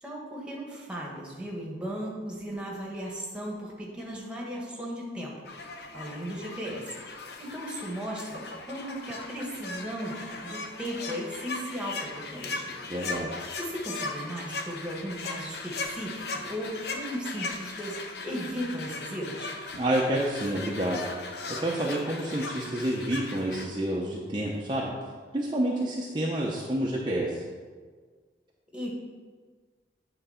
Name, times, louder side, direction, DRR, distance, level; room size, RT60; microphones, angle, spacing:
voice 1, 0.0-5.4 5.9-7.0 7.4-12.8 13.6-19.5 28.7-28.9, equal, 5° right, -3 dB, 1.4 m, -36 dB
sound 1, 5.4-23.7, left 3 dB, 60° left, 0.8 m, -38 dB
voice 2, 12.9-13.4 19.8-21.1 21.5-24.9 25.3-27.4, right 1 dB, 25° right, -4 dB, 0.7 m, -29 dB
9.0 x 4.0 x 5.7 m, 1.5 s
head